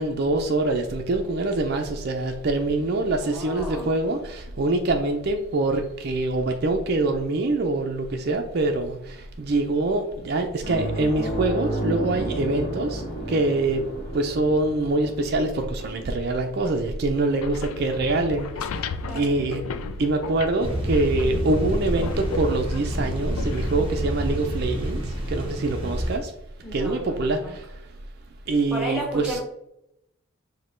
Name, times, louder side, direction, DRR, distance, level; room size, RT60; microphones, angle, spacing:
voice 1, 0.0-13.0 13.3-13.8 14.1-18.8 19.1-19.6 20.0-25.0 25.3-26.3 26.7-27.6 28.5-29.4, right 2 dB, 50° right, 4 dB, 0.4 m, -24 dB
voice 2, 3.1-3.9 19.1-19.3 26.6-27.5 28.7-29.4, right 1 dB, 5° right, -1 dB, 1.1 m, -33 dB
sound 1, 10.6-19.6 19.9-20.1 22.1-22.2, right 1 dB, 40° left, 1.1 m, -33 dB
sound 2, 17.3-25.2, left 5 dB, 80° left, 0.3 m, -35 dB
sound 3, 20.6-26.2, equal, 25° right, 0.8 m, -28 dB
5.0 x 2.2 x 4.3 m, 0.83 s
head